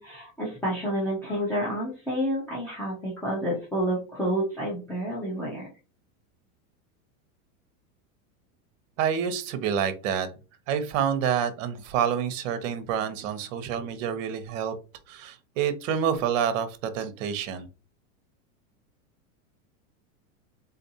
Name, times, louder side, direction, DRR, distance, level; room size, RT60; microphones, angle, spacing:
voice 1, 0.0-5.7, equal, 5° left, -7 dB, 0.4 m, -29 dB
voice 2, 9.0-10.3 10.7-14.7 15.1-17.7, right 8 dB, 60° right, 10 dB, 0.8 m, -28 dB
3.8 x 2.4 x 2.7 m, 0.33 s
supercardioid pair, 155°, 44 cm